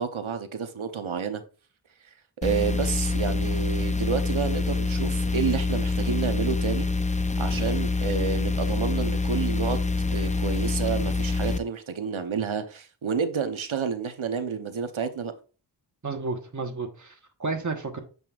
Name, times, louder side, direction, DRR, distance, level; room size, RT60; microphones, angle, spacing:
voice 1, 0.0-1.4 2.4-6.9 7.4-9.8 10.1-15.3, right 6 dB, 85° right, 0.9 m, -29 dB
sound 1, 2.4-11.6, left 3 dB, 15° left, 0.4 m, -26 dB
voice 2, 16.0-18.0, right 3 dB, 40° right, 1.3 m, -32 dB
7.7 x 5.3 x 2.4 m
wide cardioid pair, 40°, 47 cm